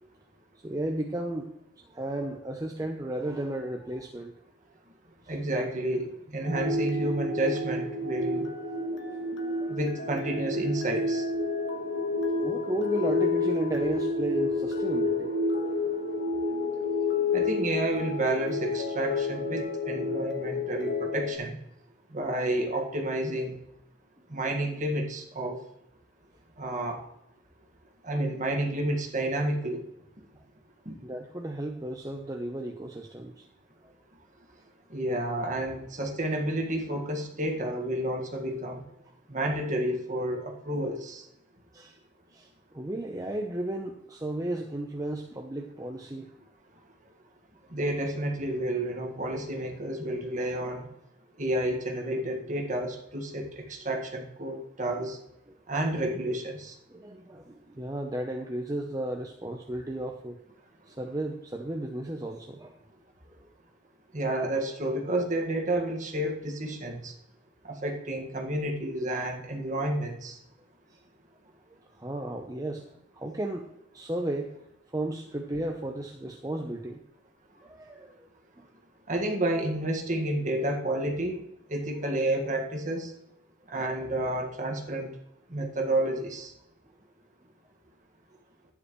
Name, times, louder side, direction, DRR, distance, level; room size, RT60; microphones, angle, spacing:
voice 1, 0.6-1.6 1.9-4.3 5.2-5.3 9.5-9.8 12.4-15.9 31.0-33.5 33.8-33.9 41.7-42.0 42.3-46.3 55.0-55.1 56.9-60.4 60.9-62.8 63.4-63.5 71.7-72.9 73.1-74.6 74.9-77.0 77.6-78.3 78.6-78.7 83.8-84.1, right 1 dB, 20° right, 2 dB, 0.7 m, -34 dB
voice 2, 5.3-8.5 9.7-11.3 17.3-21.6 22.1-23.6 24.3-25.6 26.6-27.0 28.0-29.8 30.9-31.0 34.9-38.8 39.3-41.3 47.7-50.9 51.4-55.2 55.7-56.8 64.1-67.1 67.6-70.4 79.1-81.4 81.7-83.1 83.7-85.1 85.5-86.5, right 1 dB, 40° right, 2 dB, 1.8 m, -30 dB
sound 1, 6.4-21.4, left 2 dB, 70° left, 1.5 m, -29 dB
11.5 x 10.0 x 3.1 m, 0.80 s
head